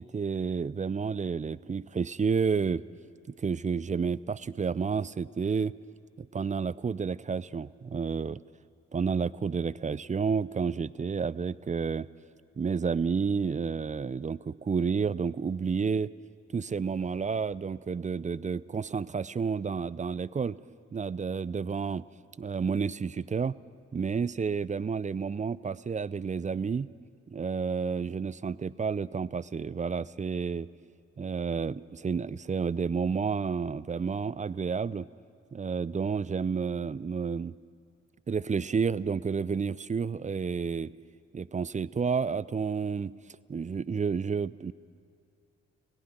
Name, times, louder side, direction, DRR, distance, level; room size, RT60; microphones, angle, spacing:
voice 1, 0.0-2.8 3.4-5.7 6.2-8.4 8.9-12.1 12.6-16.1 16.5-20.6 20.9-22.0 22.4-23.6 23.9-26.9 27.3-30.7 31.2-35.1 35.5-37.5 38.3-40.9 41.3-43.1 43.5-44.7, right 5 dB, 20° right, 20 dB, 0.5 m, -30 dB
26.0 x 17.5 x 6.0 m, 2.3 s
hypercardioid pair, 40°, 34 cm